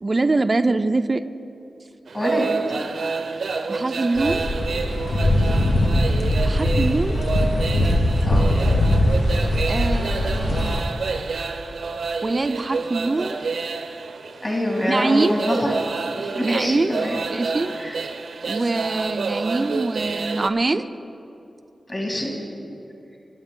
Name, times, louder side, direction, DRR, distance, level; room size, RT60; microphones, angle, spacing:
voice 1, 0.0-1.2 3.7-4.5 6.4-7.2 9.7-10.9 12.2-13.4 14.9-15.3 16.4-17.0 17.3-17.7 18.5-20.9, right 3 dB, 35° right, 10 dB, 0.4 m, -23 dB
voice 2, 2.1-2.5 8.2-8.6 14.4-15.7 16.2-17.2 17.8-18.0 21.9-22.3, left 1 dB, 30° left, -1 dB, 2.2 m, -25 dB
sound 1, 2.1-20.5, right 4 dB, 90° right, 0.6 m, -29 dB
sound 2, 4.2-10.8, left 1 dB, 85° left, 1.2 m, -21 dB
22.0 x 9.4 x 3.8 m, 2.7 s
wide cardioid pair, 130°, 0 cm